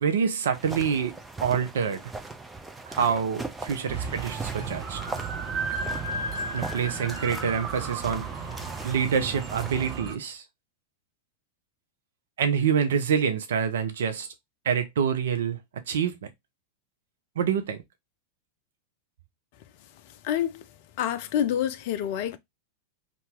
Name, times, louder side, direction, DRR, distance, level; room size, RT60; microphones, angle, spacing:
voice 1, 0.0-1.1 1.4-2.0 2.9-5.0 6.5-8.3 8.8-10.4 12.4-14.3 14.6-15.6 15.9-16.3 17.4-17.8, right 7 dB, 60° right, 0.4 m, -26 dB
sound 1, 0.5-10.0, right 3 dB, 10° right, 0.5 m, -40 dB
sound 2, 3.9-10.1, right 4 dB, 35° right, 1.0 m, -34 dB
voice 2, 20.2-20.6 21.0-22.4, left 10 dB, 50° left, 0.3 m, -27 dB
2.7 x 2.4 x 3.4 m
figure-of-eight pair, 90°, 0 cm